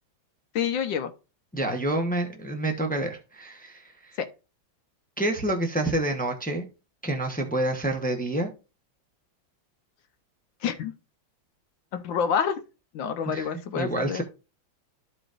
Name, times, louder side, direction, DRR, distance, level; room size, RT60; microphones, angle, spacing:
voice 1, 0.5-1.1 4.2-4.3 10.6-10.9 11.9-12.6 12.9-14.2, left 7 dB, 75° left, 1.4 m, -27 dB
voice 2, 1.5-3.8 5.2-6.7 7.0-8.5 13.3-13.5 13.8-14.2, right 1 dB, 10° left, 0.4 m, -28 dB
13.5 x 4.9 x 2.5 m
omnidirectional pair, 2.2 m